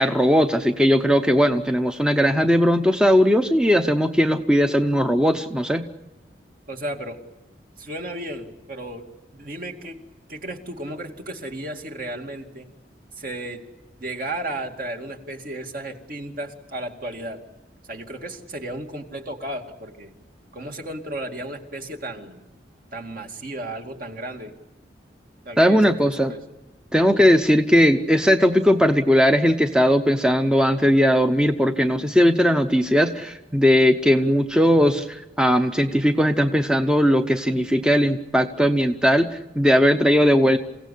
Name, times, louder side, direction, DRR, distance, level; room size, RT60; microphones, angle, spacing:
voice 1, 0.0-5.9 25.6-26.3 26.9-40.6, equal, 5° right, 7 dB, 0.7 m, -18 dB
voice 2, 6.7-7.2 7.8-9.0 9.3-10.0 10.3-12.7 13.2-13.6 14.0-17.4 17.9-20.1 20.5-22.4 22.9-24.5 25.5-26.4, right 1 dB, 50° right, 3 dB, 2.4 m, -34 dB
28.5 x 16.5 x 8.4 m, 1.1 s
head